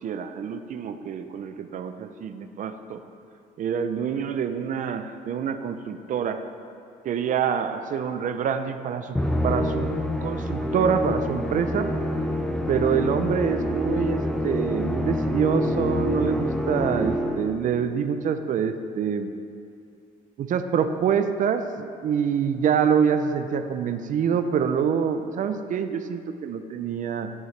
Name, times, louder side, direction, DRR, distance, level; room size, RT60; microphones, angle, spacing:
voice 1, 0.0-3.0 3.6-6.4 7.0-9.2 9.4-11.9 12.7-19.3 20.4-27.3, right 7 dB, 50° right, 9 dB, 0.5 m, -26 dB
Musical instrument, 9.1-17.6, left 1 dB, 5° left, 0.6 m, -26 dB
12.0 x 6.5 x 3.3 m, 2.5 s
cardioid pair, 110°, 17 cm